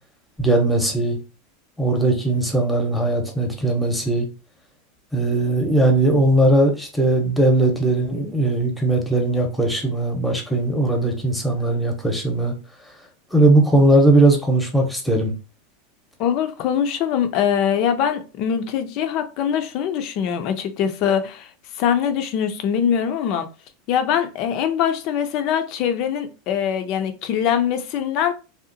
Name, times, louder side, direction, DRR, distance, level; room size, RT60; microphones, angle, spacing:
voice 1, 0.4-1.2 1.8-4.3 5.1-12.5 13.3-15.3, right 2 dB, 5° left, 0.8 m, -19 dB
voice 2, 16.2-21.5 21.7-23.5 23.9-28.3, left 8 dB, 55° left, 0.4 m, -22 dB
2.7 x 2.0 x 2.6 m
hypercardioid pair, 95°, 0 cm